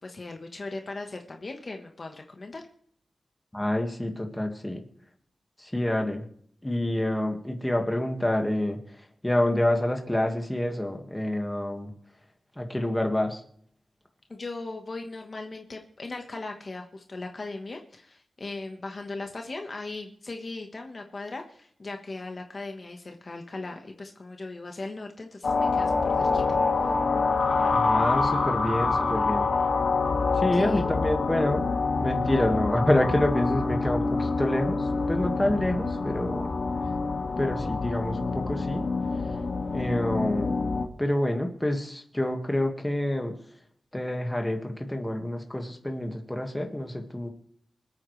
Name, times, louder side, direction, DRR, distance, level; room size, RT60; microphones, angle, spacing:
voice 1, 0.0-2.6 14.3-26.9 30.5-30.8, left 3 dB, 40° left, 4 dB, 1.3 m, -38 dB
voice 2, 3.5-4.8 5.6-6.2 6.6-11.9 12.5-13.4 27.7-29.5 30.3-31.6 32.0-36.5 37.4-38.9 39.7-40.6 41.0-43.3 43.9-47.3, left 1 dB, 10° left, 3 dB, 1.8 m, -27 dB
sound 1, 25.4-40.9, left 4 dB, 65° left, 1.9 m, -26 dB
26.0 x 8.8 x 3.3 m, 0.63 s
wide cardioid pair, 150°, 0 cm